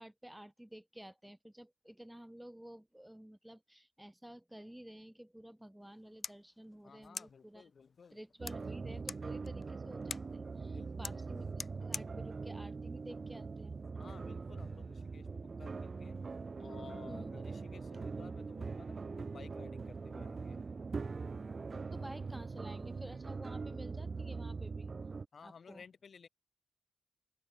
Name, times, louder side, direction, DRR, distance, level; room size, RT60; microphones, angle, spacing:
voice 1, 0.0-7.7 8.1-11.4 11.8-13.8 17.1-17.3 21.9-24.9 25.4-25.8, right 1 dB, 5° right, 3.1 m, -51 dB
sound 1, 5.8-13.8, left 4 dB, 40° left, 0.3 m, -49 dB
voice 2, 6.8-8.2 10.7-11.2 13.9-16.2 16.6-20.6 25.3-26.3, left 6 dB, 55° left, 1.5 m, -56 dB
sound 2, 8.4-25.3, right 4 dB, 40° right, 1.1 m, -42 dB
open air
wide cardioid pair, 130°, 0 cm